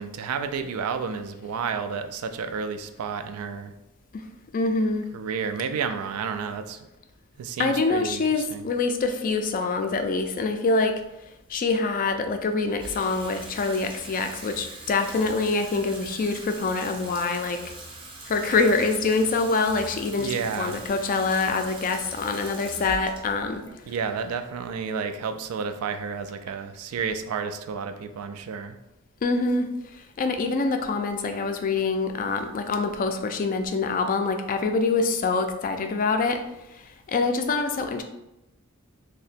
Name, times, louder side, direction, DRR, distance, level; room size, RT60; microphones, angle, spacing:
voice 1, 0.0-3.7 5.1-6.9 7.4-8.7 20.2-20.8 23.9-28.8, right 6 dB, 90° right, 9 dB, 0.3 m, -31 dB
voice 2, 4.5-5.1 7.6-11.0 11.5-17.7 18.3-23.7 29.2-36.4 36.7-38.0, left 3 dB, 40° left, 6 dB, 0.3 m, -25 dB
Water tap faucet / Sink (filling or washing), 12.8-25.1, right 2 dB, 25° right, 0.5 m, -42 dB
2.8 x 2.1 x 4.1 m, 0.91 s
head